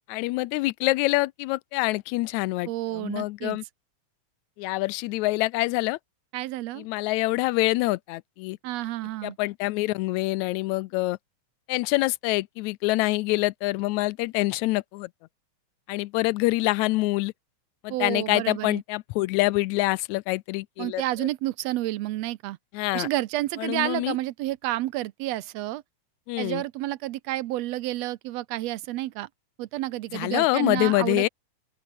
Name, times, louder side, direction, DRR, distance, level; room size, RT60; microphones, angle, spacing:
voice 1, 0.1-3.6 4.6-6.0 6.8-8.6 9.2-11.2 11.7-15.1 15.9-17.3 17.8-21.3 22.7-23.1 23.6-24.2 26.3-26.6 30.1-31.3, left 20 dB, 80° left, 1.9 m, -26 dB
voice 2, 2.7-3.6 6.3-6.9 8.6-9.4 17.9-18.8 20.8-22.6 22.9-25.8 26.4-29.3 29.6-31.3, right 16 dB, 75° right, 1.7 m, -30 dB
open air
omnidirectional pair, 3.3 m